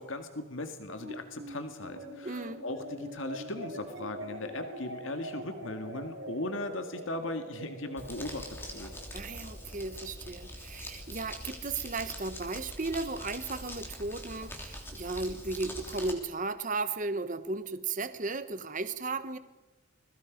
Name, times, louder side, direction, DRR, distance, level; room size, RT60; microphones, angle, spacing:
voice 1, 0.0-8.9, left 2 dB, 70° left, 7 dB, 1.9 m, -38 dB
sound 1, 1.0-13.6, right 1 dB, 60° right, 4.4 m, -45 dB
voice 2, 2.2-2.6 9.1-19.4, right 3 dB, 40° right, 11 dB, 1.2 m, -35 dB
Crumpling crinkling, 8.0-16.1, left 1 dB, 10° left, 3.2 m, -43 dB
30.0 x 22.0 x 5.2 m, 1.1 s
head